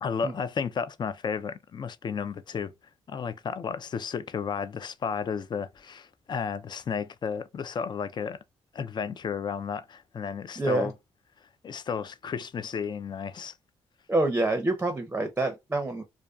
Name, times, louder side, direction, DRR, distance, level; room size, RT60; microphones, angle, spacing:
voice 1, 0.0-2.7 3.1-8.4 8.7-10.9 11.6-13.5, left 6 dB, 40° left, 0.4 m, -33 dB
voice 2, 10.6-10.9 14.1-16.0, right 2 dB, 15° right, 0.6 m, -27 dB
2.5 x 2.3 x 2.3 m
cardioid pair, 65°, 11 cm